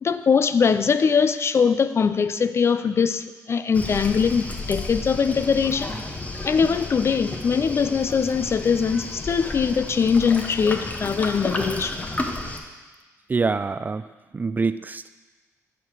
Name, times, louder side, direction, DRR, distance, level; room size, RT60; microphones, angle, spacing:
voice 1, 0.0-5.9 6.4-12.1, left 6 dB, 45° left, 12 dB, 0.4 m, -22 dB
Waves surf, 3.7-12.6, left 2 dB, 25° left, 1.0 m, -32 dB
voice 2, 13.3-14.0 14.3-15.2, right 4 dB, 30° right, 13 dB, 0.3 m, -25 dB
11.0 x 5.0 x 4.7 m, 1.3 s
cardioid pair, 80°, 6 cm